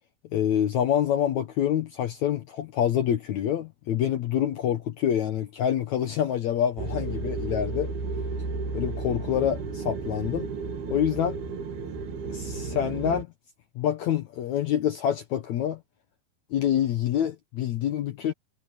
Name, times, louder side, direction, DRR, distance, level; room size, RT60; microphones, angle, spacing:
voice 1, 0.3-7.9 8.7-10.5 10.9-11.4 12.3-13.3 13.8-15.8 16.5-18.3, left 10 dB, 70° left, 1.8 m, -26 dB
sound 1, 6.8-13.2, right 4 dB, 80° right, 4.6 m, -33 dB
omnidirectional pair, 4.4 m